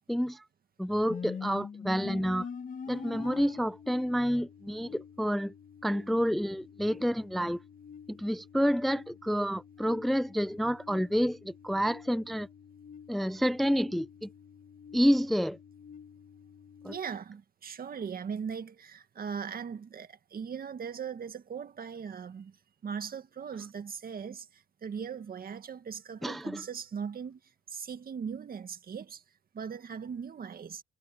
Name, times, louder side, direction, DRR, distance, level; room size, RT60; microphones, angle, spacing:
voice 1, 0.1-0.4 0.8-2.5 2.9-5.5 5.8-7.6 8.1-12.5 13.1-14.3 14.9-15.6 16.8-16.9 26.2-26.6, equal, ahead, 0.5 m, -29 dB
sound 1, 1.1-17.0, left 6 dB, 40° left, 1.5 m, -46 dB
voice 2, 16.9-22.6 22.8-27.4 27.7-29.2 29.5-30.8, right 7 dB, 50° right, 2.0 m, -39 dB
cardioid pair, 90°, 20 cm